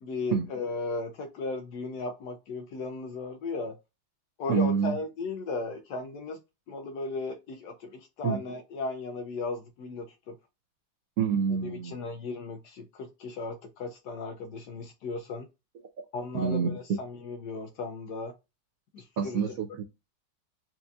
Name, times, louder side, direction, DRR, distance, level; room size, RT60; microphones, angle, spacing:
voice 1, 0.0-3.8 4.4-6.4 6.7-10.4 11.6-15.5 16.1-18.3 18.9-19.4, left 3 dB, 70° left, 1.0 m, -36 dB
voice 2, 4.5-5.0 8.2-8.4 11.2-11.9 16.3-17.0 19.2-19.8, right 6 dB, 75° right, 0.8 m, -27 dB
4.4 x 2.6 x 2.3 m
omnidirectional pair, 2.2 m